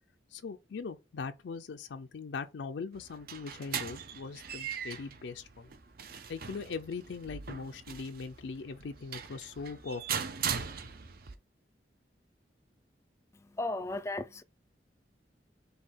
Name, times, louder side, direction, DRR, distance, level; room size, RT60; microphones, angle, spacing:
voice 1, 0.3-5.8 6.3-10.2, left 4 dB, 90° left, 0.4 m, -40 dB
sound 1, 2.9-11.3, right 7 dB, 60° right, 0.6 m, -40 dB
voice 2, 13.3-14.4, left 2 dB, 15° left, 0.3 m, -36 dB
5.4 x 2.3 x 3.5 m
head